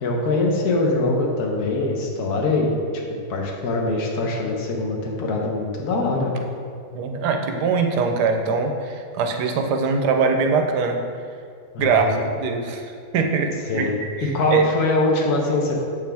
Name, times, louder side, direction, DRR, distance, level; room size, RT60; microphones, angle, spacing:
voice 1, 0.0-2.8 3.3-6.3 11.7-12.2 13.7-15.8, left 2 dB, 65° left, 0 dB, 1.4 m, -23 dB
voice 2, 6.9-11.0 11.8-12.1 12.4-12.9 13.1-13.9 14.2-14.6, right 5 dB, 85° right, 4 dB, 1.3 m, -22 dB
7.7 x 5.2 x 3.4 m, 2.2 s
omnidirectional pair, 1.8 m